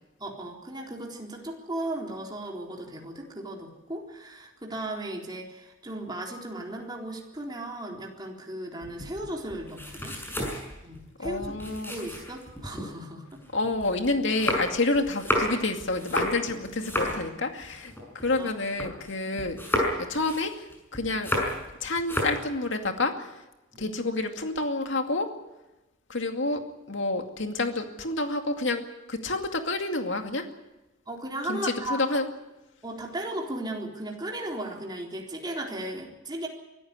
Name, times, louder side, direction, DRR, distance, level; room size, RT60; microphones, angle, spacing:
voice 1, 0.2-10.2 10.8-11.5 11.9-13.4 18.4-18.5 23.7-23.9 31.1-32.0 32.8-36.5, right 1 dB, 20° right, 0 dB, 3.9 m, -36 dB
sound 1, 8.8-12.9 13.3-19.1 19.4-21.7 22.0-22.5, left 1 dB, 10° left, 6.5 m, -31 dB
voice 2, 11.2-11.9 13.5-19.6 20.0-21.3 21.8-23.3 23.8-25.3 26.1-26.6 26.9-28.8 29.1-30.5 31.5-32.3, left 2 dB, 70° left, 5 dB, 2.3 m, -29 dB
24.0 x 14.0 x 9.7 m, 1.0 s
head